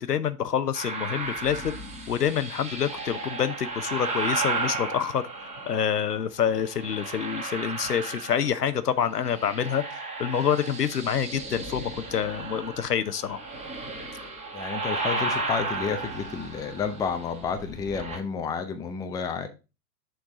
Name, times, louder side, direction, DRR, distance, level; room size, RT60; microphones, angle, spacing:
voice 1, 0.1-1.6 2.1-5.2 5.7-13.4 14.2-14.3, left 8 dB, 80° left, 13 dB, 0.8 m, -27 dB
sound 1, 0.7-6.1 6.6-8.8 9.1-18.2, right 3 dB, 15° right, 1.9 m, -34 dB
voice 2, 14.5-19.5, left 6 dB, 10° left, 7 dB, 0.5 m, -31 dB
6.5 x 4.6 x 4.7 m, 0.29 s
figure-of-eight pair, 105°, 46 cm